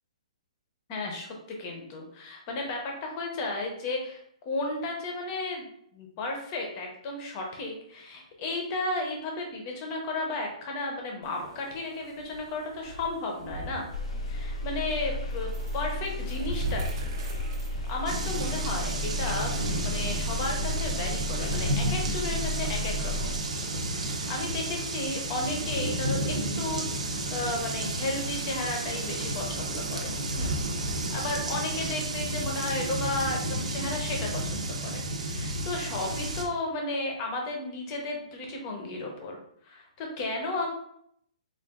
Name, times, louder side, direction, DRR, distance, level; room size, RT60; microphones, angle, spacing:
voice 1, 0.9-1.3 1.6-5.7 5.9-13.9 14.3-17.1 17.9-23.4 23.9-30.6 30.9-39.4 39.6-40.7, left 2 dB, 20° left, 1 dB, 0.7 m, -34 dB
sound 1, 11.2-24.0, right 1 dB, 35° right, 0.6 m, -43 dB
sound 2, 13.9-23.4, left 1 dB, 60° left, 0.5 m, -33 dB
sound 3, 18.1-36.4, right 1 dB, 70° right, 0.7 m, -31 dB
3.9 x 2.4 x 3.6 m, 0.69 s
hypercardioid pair, 175°, 4 cm